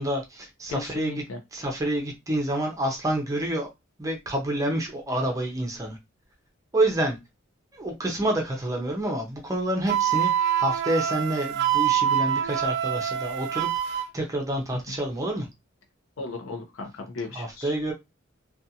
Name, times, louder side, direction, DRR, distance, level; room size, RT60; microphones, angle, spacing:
voice 1, 0.0-1.2 1.5-3.7 4.0-6.0 6.7-7.2 7.7-15.5 17.3-17.9, right 1 dB, 15° right, 0.6 m, -28 dB
voice 2, 0.7-1.4 14.7-15.0 16.2-17.7, left 3 dB, 75° left, 0.6 m, -36 dB
Wind instrument woodwind instrument, 9.9-14.1, right 10 dB, 55° right, 0.3 m, -25 dB
2.5 x 2.3 x 2.7 m
head